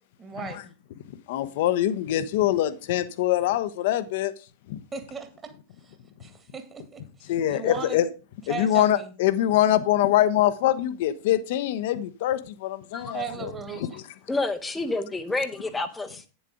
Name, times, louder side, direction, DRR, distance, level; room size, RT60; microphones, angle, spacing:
voice 1, 0.2-0.7 4.9-5.5 5.8-5.9 6.2-8.0 8.5-9.1 13.1-14.0, right 5 dB, 20° right, 1.9 m, -37 dB
voice 2, 1.3-4.3 4.7-4.8 7.3-8.1 8.5-14.0, left 12 dB, 50° left, 0.8 m, -24 dB
voice 3, 14.3-16.2, left 2 dB, 10° left, 0.8 m, -29 dB
9.5 x 7.1 x 4.9 m
figure-of-eight pair, 90°, 0 cm